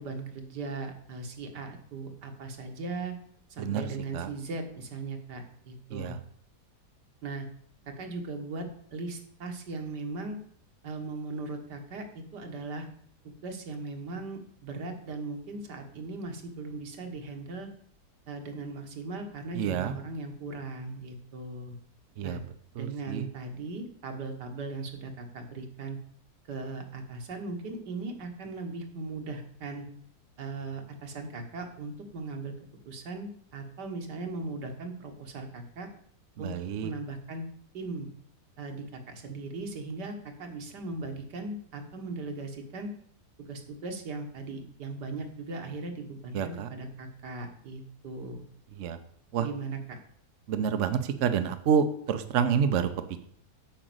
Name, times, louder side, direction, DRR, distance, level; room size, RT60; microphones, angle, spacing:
voice 1, 0.0-3.2 3.5-6.2 7.2-7.5 7.9-10.4 10.8-12.9 13.2-17.7 18.3-21.8 22.2-22.4 22.8-26.0 26.5-29.9 30.4-32.5 32.9-35.9 36.4-36.5 36.8-37.5 37.7-38.1 38.6-42.9 43.4-48.4 49.4-50.0, right 3 dB, 85° right, 5 dB, 2.0 m, -38 dB
voice 2, 19.6-19.9 22.2-22.4 22.8-23.2 36.4-36.9 46.3-46.7 48.8-49.0 49.3-49.5 50.5-52.9, right 7 dB, 60° right, 9 dB, 1.0 m, -28 dB
8.8 x 5.2 x 7.7 m, 0.62 s
omnidirectional pair, 1.8 m